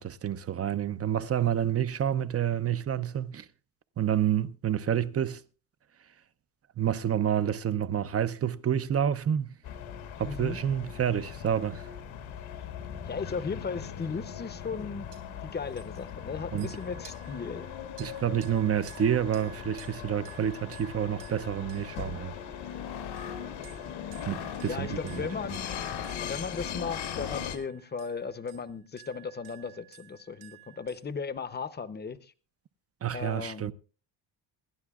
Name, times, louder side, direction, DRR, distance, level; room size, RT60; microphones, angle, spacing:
voice 1, 0.0-3.5 4.0-5.4 6.8-9.5 10.2-11.9 16.5-16.7 18.0-22.4 24.3-25.3 33.0-33.7, right 9 dB, 30° right, 0.6 m, -29 dB
sound 1, 9.6-27.6, left 8 dB, 85° left, 2.0 m, -40 dB
voice 2, 10.2-10.6 13.1-15.1 15.4-17.7 24.7-25.9 26.3-32.3 33.1-33.7, left 5 dB, 20° left, 0.8 m, -36 dB
sound 2, 14.0-14.3 14.6-14.8 15.1-15.2 15.7-22.7 23.2-31.1, right 14 dB, 85° right, 3.9 m, -54 dB
sound 3, 22.5-27.8, left 8 dB, 60° left, 1.2 m, -41 dB
27.0 x 11.5 x 2.4 m
cardioid pair, 125°, 46 cm